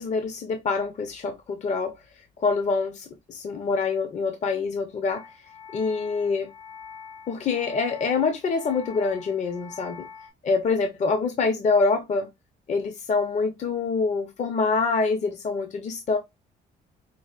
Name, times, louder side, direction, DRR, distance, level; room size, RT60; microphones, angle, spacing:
voice 1, 0.0-1.9 2.4-5.3 5.7-6.5 7.3-10.1 10.4-12.3 12.7-16.2, left 4 dB, 40° left, 0.6 m, -25 dB
sound 1, 5.1-10.3, left 6 dB, 85° left, 1.8 m, -44 dB
4.7 x 2.4 x 2.4 m
cardioid pair, 120°, 18 cm